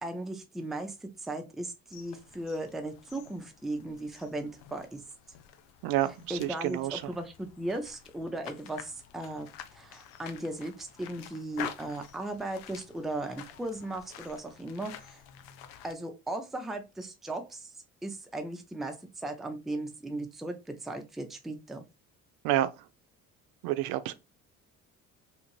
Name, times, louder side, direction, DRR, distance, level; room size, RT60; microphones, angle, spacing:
voice 1, 0.0-5.0 6.3-15.2 15.8-17.7 18.0-21.8, right 1 dB, ahead, 0.5 m, -37 dB
sound 1, 1.9-15.9, left 10 dB, 65° left, 0.6 m, -48 dB
voice 2, 5.8-7.0 22.4-22.7 23.6-24.1, right 14 dB, 60° right, 0.5 m, -29 dB
2.8 x 2.5 x 2.9 m
hypercardioid pair, 55°, 40 cm